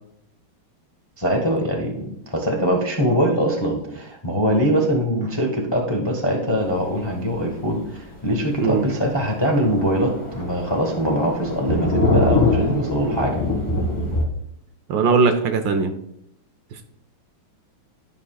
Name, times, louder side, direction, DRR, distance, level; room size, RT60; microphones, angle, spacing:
voice 1, 1.2-13.4, equal, 30° left, 1 dB, 0.5 m, -22 dB
Thunder, 7.3-7.4 7.8-7.9 8.3-8.4 8.7-8.8 9.0-14.2, left 2 dB, 10° left, 1.0 m, -23 dB
voice 2, 14.9-15.9, right 5 dB, 70° right, 8 dB, 1.3 m, -19 dB
11.5 x 5.6 x 2.3 m, 0.75 s
omnidirectional pair, 2.3 m